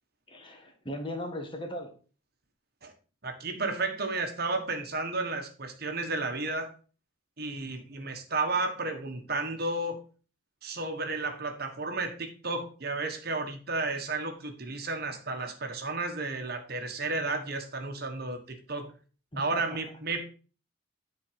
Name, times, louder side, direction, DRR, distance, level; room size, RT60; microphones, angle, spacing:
voice 1, 0.3-1.9 19.3-19.8, left 1 dB, 25° left, 4 dB, 1.3 m, -38 dB
voice 2, 3.2-6.7 7.4-10.0 10.6-18.9 19.4-20.3, right 3 dB, 50° right, 5 dB, 1.3 m, -32 dB
10.5 x 4.3 x 5.0 m, 0.38 s
head